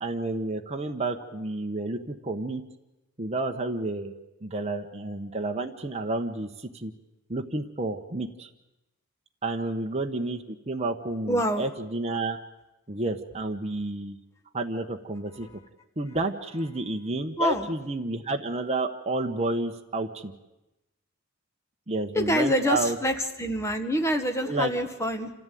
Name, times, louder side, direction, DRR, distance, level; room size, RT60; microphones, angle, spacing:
voice 1, 0.0-2.6 3.2-4.1 4.4-6.9 7.3-8.5 9.4-12.4 12.9-14.2 14.5-15.5 16.0-20.3 21.9-23.0 24.5-24.7, right 2 dB, 30° right, 3 dB, 1.1 m, -30 dB
voice 2, 11.3-11.6 17.4-17.7 22.1-25.3, equal, 15° left, 5 dB, 1.6 m, -26 dB
27.0 x 15.0 x 9.3 m, 0.98 s
head